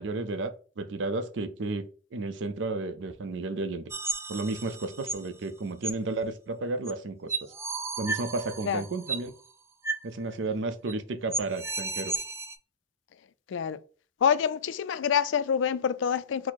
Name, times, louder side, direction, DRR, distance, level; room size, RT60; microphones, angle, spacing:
voice 1, 0.0-3.8 4.3-7.3 8.0-9.3 10.0-12.2, right 3 dB, 70° right, 0.5 m, -32 dB
sound 1, 3.9-5.3 5.8-5.9 6.9-7.0 7.3-9.3 9.8-10.0 10.3-10.4 10.9-11.0 11.3-12.6, right 3 dB, 15° right, 0.3 m, -33 dB
voice 2, 13.5-13.8 14.2-16.5, left 7 dB, 75° left, 0.3 m, -26 dB
4.6 x 2.0 x 4.1 m
head